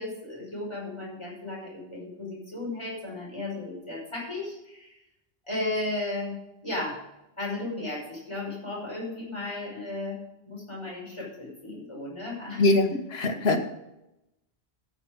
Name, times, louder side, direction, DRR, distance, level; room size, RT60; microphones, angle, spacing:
voice 1, 0.0-5.0 5.5-7.0 7.4-10.2 10.5-12.6 12.9-13.0 13.3-13.6, left 2 dB, 30° left, -5 dB, 5.6 m, -35 dB
voice 2, 12.6-13.6, left 2 dB, 80° left, 5 dB, 1.5 m, -23 dB
13.5 x 8.3 x 5.2 m, 0.89 s
omnidirectional pair, 1.0 m